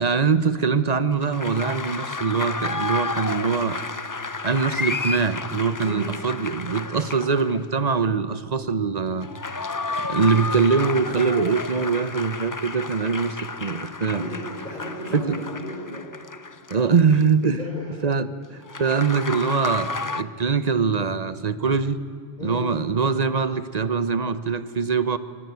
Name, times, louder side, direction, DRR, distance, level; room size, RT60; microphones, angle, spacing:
voice 1, 0.0-3.8 4.4-9.3 10.1-14.3 15.1-15.5 16.7-17.6 18.0-22.0 22.4-25.2, right 5 dB, 40° right, 13 dB, 1.1 m, -23 dB
sound 1, 1.2-7.8 9.1-17.4 18.7-20.2, left 3 dB, 25° left, 0.5 m, -32 dB
voice 2, 14.1-16.0 17.6-17.9 22.4-22.6, equal, 45° left, -5 dB, 5.6 m, -35 dB
25.0 x 20.5 x 9.6 m, 2.4 s
omnidirectional pair, 1.1 m